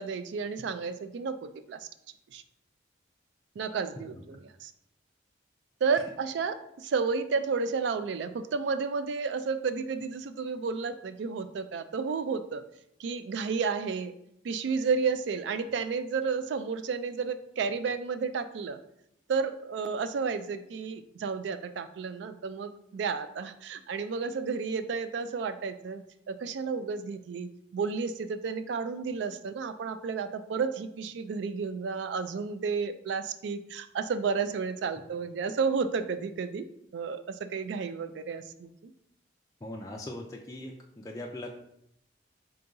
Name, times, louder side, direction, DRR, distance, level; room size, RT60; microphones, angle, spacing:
voice 1, 0.0-1.9 2.3-2.4 3.6-4.7 5.8-12.6 13.0-14.1 14.4-18.8 19.3-38.7, right 5 dB, 70° right, 11 dB, 0.3 m, -32 dB
voice 2, 39.6-41.5, left 1 dB, 20° left, -1 dB, 0.3 m, -40 dB
3.8 x 2.8 x 3.7 m, 0.77 s
head